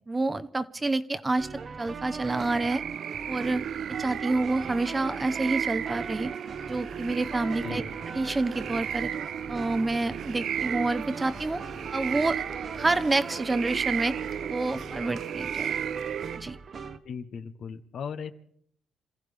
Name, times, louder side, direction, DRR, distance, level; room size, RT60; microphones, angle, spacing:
voice 1, 0.1-1.5 1.8-2.8 3.3-3.6 4.0-6.3 6.7-7.8 8.1-9.1 9.5-11.6 11.9-12.4 12.8-14.1 14.5-15.7 16.4-16.6, right 2 dB, 20° right, 13 dB, 0.8 m, -28 dB
sound 1, 1.4-17.0, right 5 dB, 45° right, 1.1 m, -40 dB
sound 2, 2.2-16.4, right 9 dB, 65° right, 0.6 m, -34 dB
sound 3, 6.7-15.1, left 3 dB, 25° left, 2.1 m, -50 dB
voice 2, 17.0-18.3, left 6 dB, 65° left, 10 dB, 1.2 m, -37 dB
27.0 x 15.0 x 3.5 m, 0.68 s
cardioid pair, 90°, 0 cm